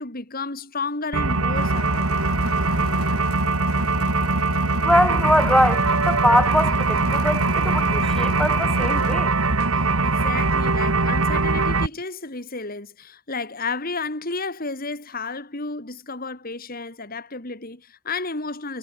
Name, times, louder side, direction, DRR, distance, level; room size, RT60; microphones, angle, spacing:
voice 1, 0.0-2.2 10.0-18.8, left 3 dB, 40° left, 3.0 m, -32 dB
sound 1, 1.1-11.9, right 3 dB, 80° right, 2.5 m, -21 dB
sound 2, 1.5-9.1, left 3 dB, 85° left, 2.0 m, -35 dB
voice 2, 4.8-9.3, equal, 5° left, 3.6 m, -22 dB
head